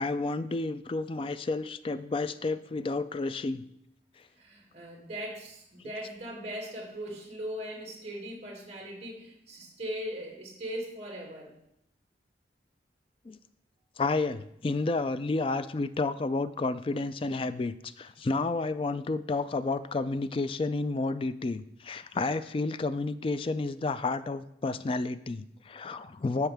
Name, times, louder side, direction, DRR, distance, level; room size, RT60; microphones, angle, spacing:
voice 1, 0.0-3.6 13.3-13.4 14.0-26.5, left 3 dB, 30° left, 13 dB, 0.3 m, -31 dB
voice 2, 4.4-11.5, equal, 35° right, -2 dB, 2.3 m, -39 dB
13.5 x 4.6 x 3.5 m, 0.78 s
head